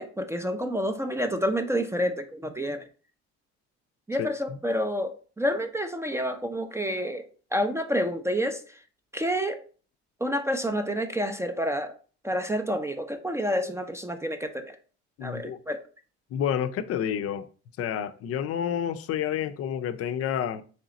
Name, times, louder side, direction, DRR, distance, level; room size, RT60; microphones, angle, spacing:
voice 1, 0.0-2.8 4.1-8.8 9.1-9.6 10.2-11.9 12.2-14.8 15.2-15.8, equal, 10° right, 0.4 m, -29 dB
voice 2, 15.2-15.6 16.3-17.5 17.8-20.6, left 9 dB, 55° left, 0.5 m, -29 dB
3.2 x 2.9 x 3.8 m
cardioid pair, 95°, 29 cm